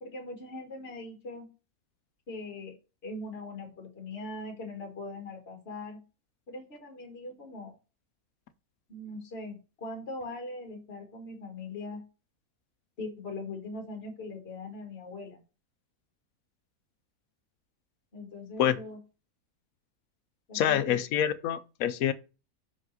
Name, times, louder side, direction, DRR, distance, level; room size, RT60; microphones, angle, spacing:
voice 1, 0.0-1.5 2.3-2.8 3.0-6.0 6.5-7.7 8.9-12.0 13.0-15.4 18.1-19.0 20.5-21.0, left 2 dB, 45° left, 1.9 m, -41 dB
voice 2, 20.5-22.1, left 10 dB, 70° left, 1.0 m, -26 dB
5.7 x 5.1 x 3.9 m
omnidirectional pair, 1.6 m